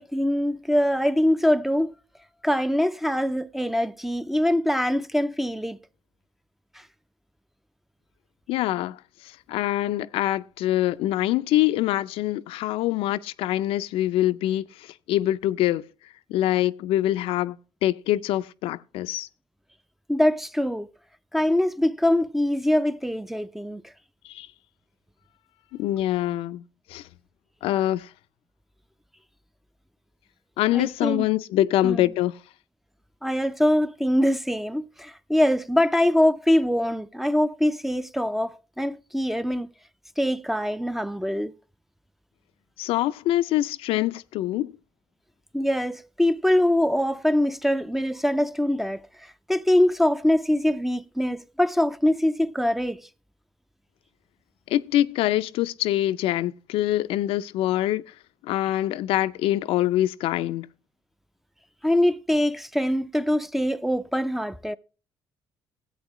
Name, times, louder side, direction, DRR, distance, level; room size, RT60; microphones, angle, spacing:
voice 1, 0.0-1.9 2.4-5.8 20.1-20.9 21.3-23.8 30.7-31.3 31.8-32.0 33.2-39.7 40.2-41.5 45.5-49.0 49.5-53.0 61.8-64.8, left 1 dB, ahead, 0.5 m, -23 dB
voice 2, 8.5-9.0 9.5-15.9 16.3-17.6 17.8-19.3 24.2-24.5 25.7-26.6 26.9-27.0 27.6-28.1 30.6-32.4 42.8-44.7 54.7-58.0 58.4-60.7, left 14 dB, 75° left, 0.4 m, -24 dB
14.0 x 8.1 x 3.0 m
supercardioid pair, 75°, 9 cm